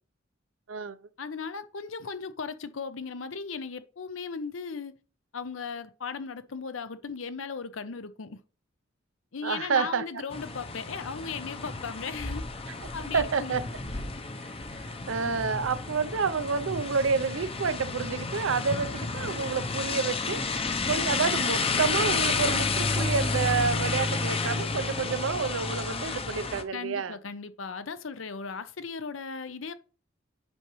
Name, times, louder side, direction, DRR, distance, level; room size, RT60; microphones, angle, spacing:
voice 1, 1.2-4.9 5.3-8.4 9.3-12.4 12.9-13.5 26.7-29.7, left 5 dB, 80° left, 0.7 m, -37 dB
voice 2, 9.4-10.0 13.1-13.6 14.4-27.2, right 5 dB, 80° right, 0.6 m, -29 dB
sound 1, 10.3-26.6, left 4 dB, 30° left, 0.7 m, -31 dB
8.5 x 6.0 x 3.1 m
head